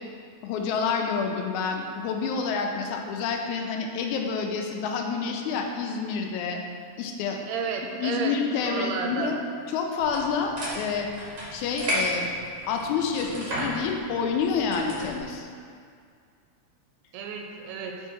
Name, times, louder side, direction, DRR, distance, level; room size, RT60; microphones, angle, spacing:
voice 1, 0.4-6.6 7.0-7.4 8.0-9.4 9.7-11.1 11.5-12.3 12.7-15.5, left 5 dB, 85° left, 2 dB, 2.0 m, -28 dB
voice 2, 7.4-9.3 17.1-18.0, right 5 dB, 80° right, 2 dB, 1.7 m, -32 dB
sound 1, 10.0-15.2, equal, 50° right, 1.1 m, -33 dB
5.1 x 4.5 x 4.5 m, 2.2 s
omnidirectional pair, 3.4 m